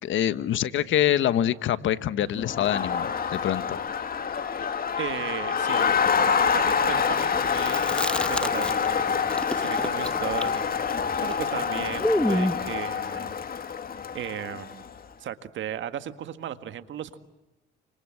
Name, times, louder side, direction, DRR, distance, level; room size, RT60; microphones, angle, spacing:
voice 1, 0.0-3.8, left 11 dB, 75° left, 13 dB, 1.4 m, -25 dB
Crowd, 2.4-14.9, left 6 dB, 50° left, 2.1 m, -27 dB
voice 2, 4.6-13.3 14.1-14.8 15.2-17.2, right 10 dB, 70° right, 10 dB, 1.8 m, -36 dB
Chewing mastication, 7.5-9.0 9.3-12.7, left 1 dB, 5° left, 1.2 m, -28 dB
29.5 x 26.0 x 7.8 m, 1.0 s
cardioid pair, 90°, 20 cm